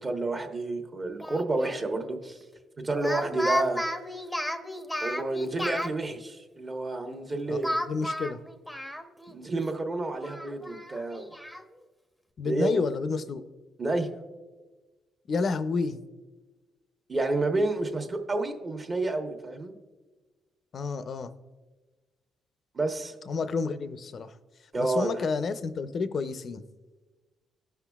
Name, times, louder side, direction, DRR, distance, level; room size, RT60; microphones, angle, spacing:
voice 1, 0.0-2.4 2.8-3.8 5.0-7.7 9.3-11.3 12.4-12.8 13.8-14.1 17.1-19.7 22.7-23.1 24.7-25.1, right 2 dB, 30° right, 4 dB, 1.1 m, -29 dB
Speech, 1.2-1.8 2.9-5.9 7.6-9.4 9.7-9.8 10.2-11.6, left 1 dB, 5° left, 0.7 m, -33 dB
voice 2, 7.8-8.4 12.4-13.4 15.3-16.0 20.7-21.3 23.3-24.4 24.8-26.6, left 4 dB, 50° left, 12 dB, 0.5 m, -30 dB
17.0 x 5.8 x 2.4 m, 1.3 s
cardioid pair, 90°, 0 cm